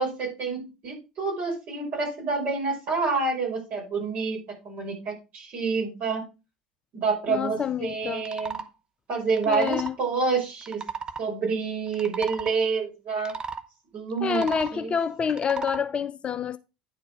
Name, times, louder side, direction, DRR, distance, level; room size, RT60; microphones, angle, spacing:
voice 1, 0.0-6.2 6.9-8.6 9.1-10.8 11.2-13.4 13.9-14.4 14.7-14.9, right 4 dB, 45° right, 5.4 m, -28 dB
voice 2, 7.3-8.3 9.5-10.0 14.2-16.6, left 7 dB, 30° left, 0.5 m, -27 dB
sound 1, 8.2-8.7 9.3-10.0 10.6-11.2 11.9-12.5 13.2-13.6 14.2-14.8 15.3-15.8, right 5 dB, 25° right, 0.9 m, -35 dB
9.9 x 4.7 x 4.7 m
figure-of-eight pair, 70°, 4 cm